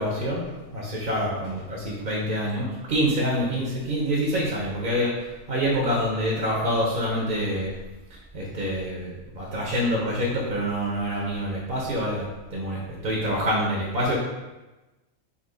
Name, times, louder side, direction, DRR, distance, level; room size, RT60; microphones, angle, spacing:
voice 1, 0.0-7.7 8.3-12.2 12.5-14.2, equal, 50° right, -3 dB, 0.8 m, -26 dB
4.1 x 2.8 x 3.7 m, 1.1 s
omnidirectional pair, 1.4 m